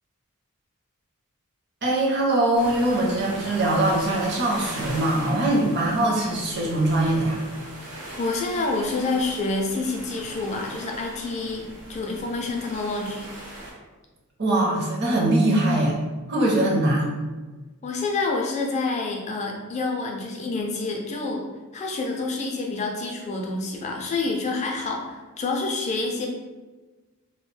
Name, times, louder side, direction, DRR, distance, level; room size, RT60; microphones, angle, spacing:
voice 1, 1.8-7.4 14.4-16.0 16.3-17.2, right 1 dB, 50° right, -2 dB, 0.6 m, -22 dB
sound 1, 2.5-13.7, right 1 dB, 80° right, 0.9 m, -39 dB
voice 2, 8.2-11.6 11.9-13.3 17.8-21.4 21.7-26.3, left 3 dB, 30° left, 1 dB, 0.3 m, -28 dB
2.3 x 2.1 x 3.1 m, 1.3 s
head